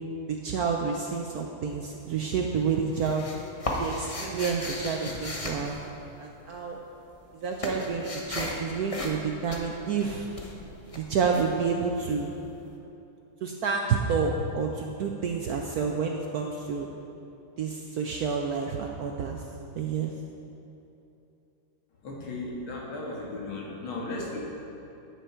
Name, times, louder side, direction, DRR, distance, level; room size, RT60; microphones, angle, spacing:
voice 1, 0.3-3.3 3.8-5.8 6.2-6.8 7.4-10.3 10.9-12.3 13.4-16.9 17.6-19.4 19.8-20.1, right 5 dB, 75° right, 2 dB, 0.8 m, -29 dB
sound 1, 1.7-2.2 2.5-6.6 6.8-12.4, left 1 dB, 50° left, 0.4 m, -36 dB
voice 2, 22.0-24.4, left 2 dB, 75° left, -3 dB, 2.5 m, -35 dB
10.0 x 8.9 x 4.4 m, 2.9 s
omnidirectional pair, 2.3 m